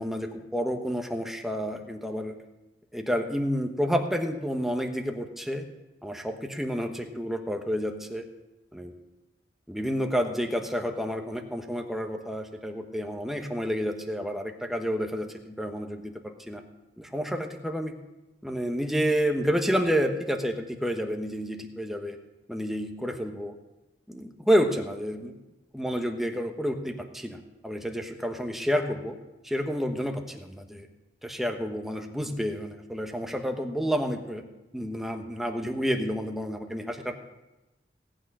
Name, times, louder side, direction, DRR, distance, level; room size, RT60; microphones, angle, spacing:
voice 1, 0.0-2.4 2.9-5.6 6.0-8.3 8.7-8.9 9.7-16.6 17.0-17.9 18.4-22.2 22.5-23.5 24.1-25.4 25.7-27.4 27.6-29.2 29.4-30.9 31.2-34.4 34.7-37.2, equal, ahead, 4 dB, 1.1 m, -29 dB
17.5 x 9.0 x 5.5 m, 1.0 s
head